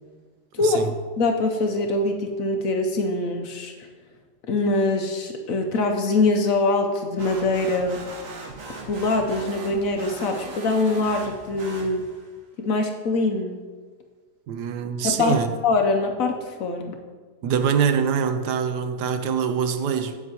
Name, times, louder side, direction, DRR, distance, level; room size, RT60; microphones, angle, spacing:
voice 1, 0.6-1.0 14.5-15.6 17.4-20.2, right 7 dB, 80° right, 8 dB, 1.2 m, -24 dB
voice 2, 1.2-3.9 4.5-8.0 8.8-12.0 12.6-13.6 15.0-17.0, left 3 dB, 65° left, 4 dB, 1.0 m, -23 dB
sound 1, 7.2-12.4, right 2 dB, 55° right, 1.4 m, -39 dB
9.7 x 8.0 x 2.8 m, 1.5 s
omnidirectional pair, 1.8 m